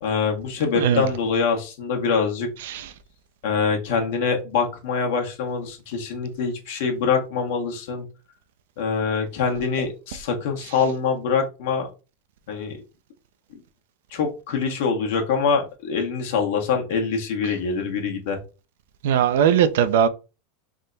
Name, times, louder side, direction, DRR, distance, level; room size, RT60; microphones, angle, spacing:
voice 1, 0.0-2.5 3.4-8.0 8.8-11.9 12.5-12.8 14.1-18.4, left 5 dB, 70° left, 1.2 m, -24 dB
voice 2, 0.8-1.1 2.7-2.8 19.0-20.1, right 9 dB, 75° right, 0.5 m, -19 dB
3.6 x 2.2 x 3.9 m
hypercardioid pair, 95°, 0 cm